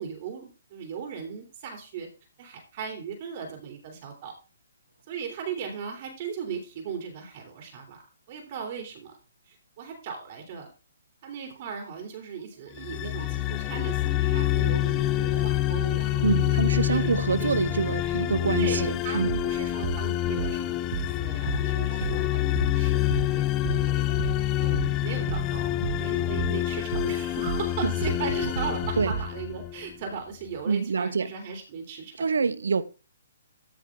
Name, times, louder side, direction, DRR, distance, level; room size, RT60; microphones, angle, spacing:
voice 1, 0.0-2.1 2.4-4.3 5.1-8.0 8.3-9.2 9.5-10.7 11.2-17.1 17.4-18.2 18.5-23.4 23.9-24.3 24.5-32.4, right 6 dB, 40° right, 3.1 m, -38 dB
sound 1, 11.6-11.9 12.8-14.0 15.0-15.9 16.2-16.3 17.1-17.6 18.1-18.2 19.3-20.6 20.9-21.1 21.5-22.8 23.1-23.3 23.6-25.0 25.3-25.5 25.8-27.2 27.5-27.7 28.0-29.3, right 8 dB, 60° right, 0.5 m, -34 dB
sound 2, 12.8-29.9, left 14 dB, 20° left, 0.5 m, -27 dB
voice 2, 16.2-19.4 27.8-27.9 29.0-29.1 30.7-31.3 32.2-32.8, right 5 dB, 85° right, 0.8 m, -26 dB
14.5 x 6.2 x 3.7 m
hypercardioid pair, 155°, 0 cm